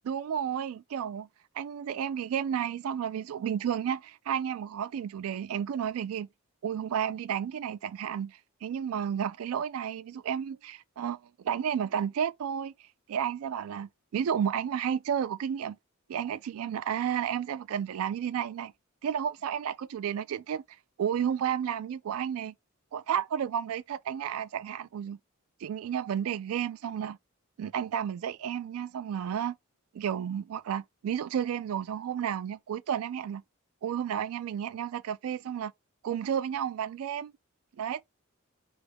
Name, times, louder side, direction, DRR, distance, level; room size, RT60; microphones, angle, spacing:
voice 1, 0.1-1.3 1.6-6.3 6.6-11.2 11.4-12.7 13.1-15.8 16.1-18.7 19.0-20.6 21.0-22.5 22.9-25.2 25.6-27.2 27.6-29.6 29.9-33.4 33.8-35.7 36.0-37.3 37.8-38.0, right 8 dB, 85° right, 0.3 m, -32 dB
3.5 x 2.4 x 3.4 m
head